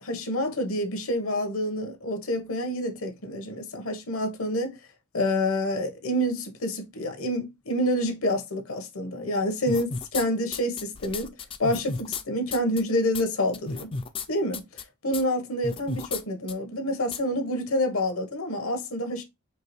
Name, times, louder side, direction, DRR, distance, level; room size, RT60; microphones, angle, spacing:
voice 1, 0.0-4.8 5.1-11.3 11.6-13.9 14.3-14.6 15.0-19.2, left 1 dB, 75° left, 1.1 m, -28 dB
sound 1, 9.7-10.2 10.5-12.2 12.5-12.8 13.1-13.2 13.5-14.3 14.5-14.8 15.1-15.2 15.6-16.2 16.5-16.6 17.1-17.2, left 4 dB, 25° left, 0.3 m, -33 dB
4.6 x 2.9 x 3.1 m
head